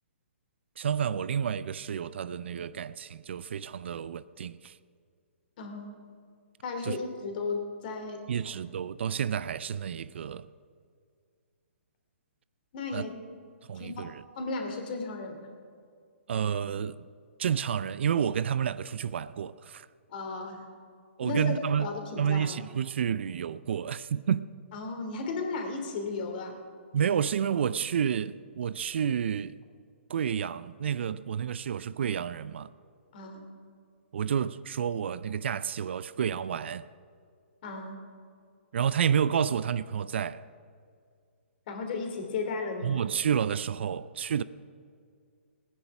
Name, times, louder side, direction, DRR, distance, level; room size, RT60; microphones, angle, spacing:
voice 1, 0.8-4.8 6.8-7.0 8.3-10.5 12.9-13.1 13.7-14.2 16.3-17.0 17.4-19.9 21.2-21.9 22.2-24.5 26.9-29.6 30.1-32.7 34.1-36.9 38.7-40.4 42.8-44.4, right 8 dB, 60° right, 0.5 m, -30 dB
voice 2, 5.6-6.0 6.6-8.3 12.7-13.1 13.7-14.1 14.4-15.5 20.1-20.7 21.2-22.6 24.7-26.6 33.1-33.5 37.6-38.0 41.7-43.0, left 3 dB, 45° left, 2.9 m, -35 dB
18.5 x 9.8 x 6.0 m
hypercardioid pair, 140°, 7 cm